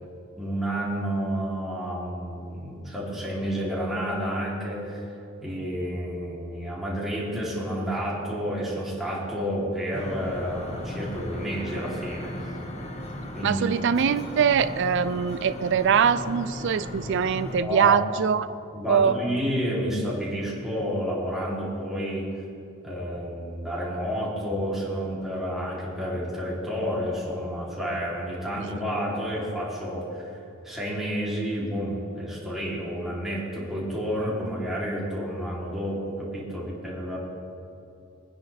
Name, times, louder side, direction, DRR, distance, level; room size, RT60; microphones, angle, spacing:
voice 1, 0.3-5.0 5.4-12.3 13.3-13.6 17.5-18.0 18.7-22.3 22.8-30.4 30.6-37.2, equal, ahead, -8 dB, 3.3 m, -30 dB
sound 1, 9.9-17.6, left 1 dB, 35° left, 1.3 m, -36 dB
voice 2, 13.4-18.5 18.9-19.2, right 7 dB, 60° right, 12 dB, 0.4 m, -23 dB
22.5 x 10.0 x 3.5 m, 2.8 s
head